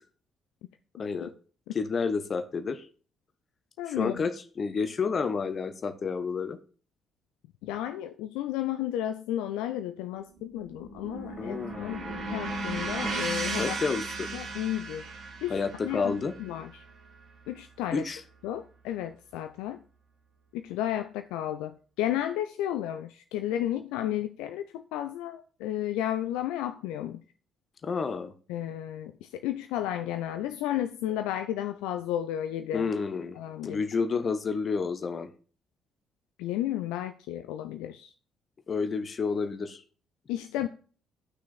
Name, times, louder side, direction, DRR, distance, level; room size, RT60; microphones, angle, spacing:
voice 1, 0.9-1.3 1.7-2.9 3.9-6.6 11.4-12.3 13.6-14.3 15.5-16.3 17.9-18.2 27.8-28.3 32.7-33.4 33.6-35.3 38.7-39.8, left 5 dB, 40° left, 1.2 m, -30 dB
voice 2, 3.8-4.1 7.6-12.0 12.3-13.8 14.3-15.0 15.4-15.6 15.8-16.8 17.5-18.0 18.4-19.8 20.5-27.2 28.5-32.9 33.4-33.8 36.4-38.1 40.3-40.7, left 12 dB, 65° left, 0.5 m, -32 dB
sound 1, 10.4-18.7, right 3 dB, 55° right, 3.4 m, -36 dB
11.5 x 6.2 x 4.2 m
figure-of-eight pair, 45°, 0 cm